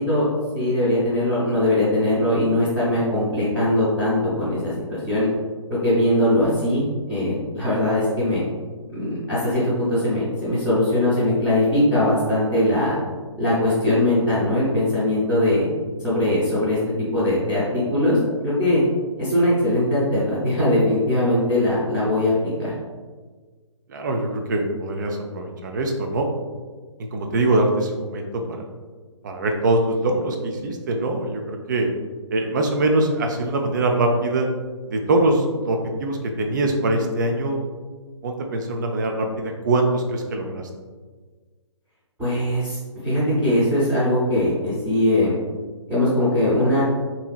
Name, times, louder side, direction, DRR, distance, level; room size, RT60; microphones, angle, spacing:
voice 1, 0.0-5.3 5.8-6.8 7.1-8.4 8.9-13.0 13.4-15.7 16.0-16.8 17.1-18.8 19.2-22.7 42.2-42.8 43.0-45.3 45.9-46.8, left 1 dB, 5° right, -14 dB, 0.7 m, -21 dB
voice 2, 23.9-26.3 27.1-28.6 29.2-31.9 32.3-34.5 34.9-37.6 38.2-40.6, right 2 dB, 35° right, 3 dB, 0.4 m, -23 dB
2.8 x 2.7 x 2.3 m, 1.4 s
figure-of-eight pair, 135°, 16 cm